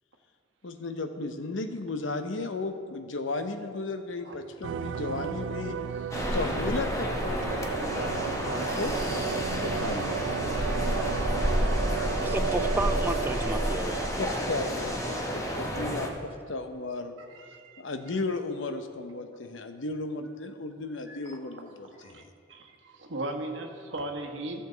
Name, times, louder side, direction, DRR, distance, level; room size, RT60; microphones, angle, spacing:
voice 1, 0.6-8.9 9.6-10.4 14.2-17.1 17.8-22.3, left 3 dB, 90° left, 7 dB, 0.8 m, -35 dB
sound 1, 4.6-14.1, right 7 dB, 75° right, 0.3 m, -34 dB
sound 2, 6.1-16.1, equal, 15° left, 1.0 m, -30 dB
voice 2, 12.1-14.2, right 2 dB, 10° right, 7 dB, 0.5 m, -32 dB
voice 3, 17.2-17.8 21.1-21.2 21.9-22.2 22.5-24.6, right 1 dB, 90° right, 3 dB, 1.3 m, -38 dB
15.0 x 7.0 x 3.9 m, 2.3 s
head